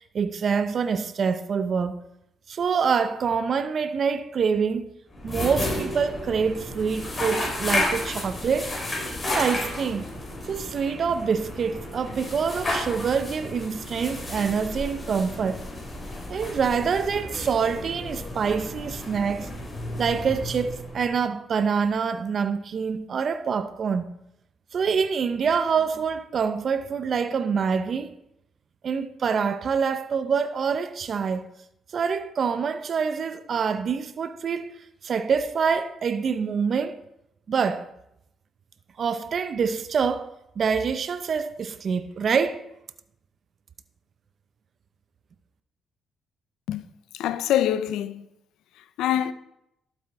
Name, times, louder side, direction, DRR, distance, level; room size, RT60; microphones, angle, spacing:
voice 1, 0.0-2.0 2.5-4.9 5.2-8.8 9.2-10.1 10.5-15.6 16.3-19.5 20.0-24.1 24.7-28.1 28.8-31.5 31.9-34.8 35.0-37.0 37.5-37.9 39.0-42.6, right 6 dB, 50° right, 0.7 m, -26 dB
sound 1, 5.1-21.2, left 1 dB, 25° left, 4.1 m, -32 dB
voice 2, 47.1-48.3 49.0-49.3, left 11 dB, 90° left, 0.6 m, -24 dB
12.0 x 7.9 x 4.7 m
cardioid pair, 90°, 0 cm